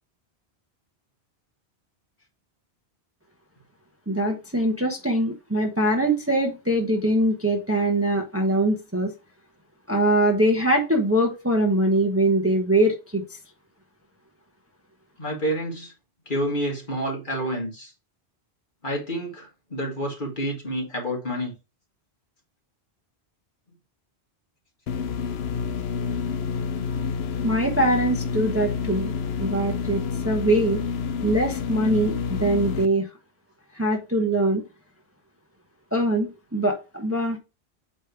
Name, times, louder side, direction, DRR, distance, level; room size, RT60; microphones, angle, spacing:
voice 1, 4.1-9.1 9.9-13.2 27.4-29.1 29.4-30.8 31.2-33.1 33.7-34.6 35.9-37.4, right 1 dB, 15° right, 1.0 m, -22 dB
voice 2, 15.2-15.9 16.3-17.9 18.8-21.5, equal, 50° left, 2.2 m, -29 dB
sound 1, 24.9-32.9, left 6 dB, 75° left, 0.8 m, -28 dB
8.4 x 3.2 x 4.7 m
omnidirectional pair, 1.1 m